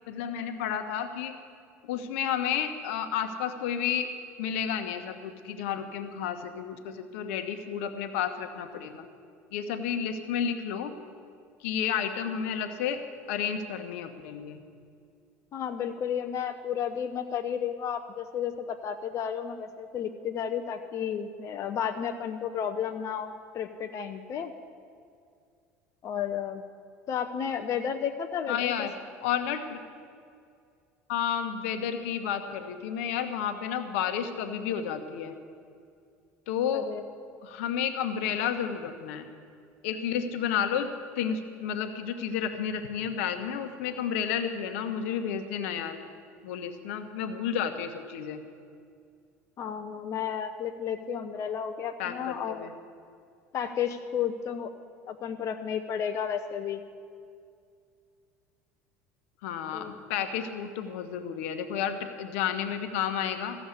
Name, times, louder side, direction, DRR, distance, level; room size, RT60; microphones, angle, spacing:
voice 1, 0.1-1.4 1.8-4.1 4.4-9.0 9.5-10.9 11.6-13.0 13.3-14.6 28.5-28.9 29.2-29.8 31.1-35.3 36.5-36.9 37.4-39.3 39.8-46.0 46.4-48.4 52.0-52.8 59.4-63.6, left 8 dB, 75° left, 8 dB, 1.1 m, -31 dB
voice 2, 15.5-24.5 26.0-26.6 27.1-28.9 36.7-37.0 49.6-52.7 53.5-54.7 55.1-56.8 59.7-60.0, left 8 dB, 45° left, 6 dB, 0.7 m, -32 dB
14.5 x 7.2 x 9.7 m, 2.3 s
hypercardioid pair, 75°, 7 cm